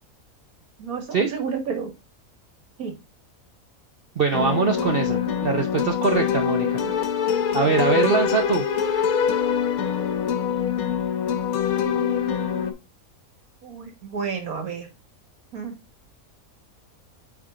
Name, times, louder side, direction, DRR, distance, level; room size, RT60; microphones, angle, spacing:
voice 1, 0.8-1.9 2.8-2.9 6.8-6.9 7.6-8.4 13.6-14.9 15.5-15.7, right 6 dB, 75° right, 5 dB, 2.0 m, -31 dB
voice 2, 4.2-6.8 7.5-8.7, right 5 dB, 50° right, 4 dB, 0.7 m, -23 dB
sound 1, 4.3-12.7, left 8 dB, 80° left, 1.4 m, -24 dB
8.3 x 3.5 x 3.7 m, 0.25 s
omnidirectional pair, 1.5 m